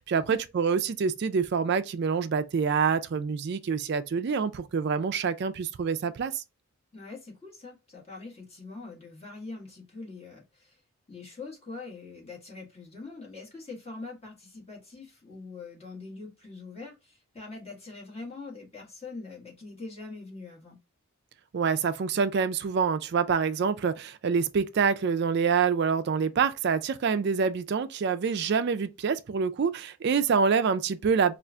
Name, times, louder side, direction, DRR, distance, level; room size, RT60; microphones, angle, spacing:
voice 1, 0.0-6.4 21.5-31.4, right 6 dB, 50° right, 0.3 m, -26 dB
voice 2, 6.9-10.8 11.1-20.8, left 3 dB, 30° left, 1.7 m, -43 dB
4.3 x 2.4 x 2.3 m
head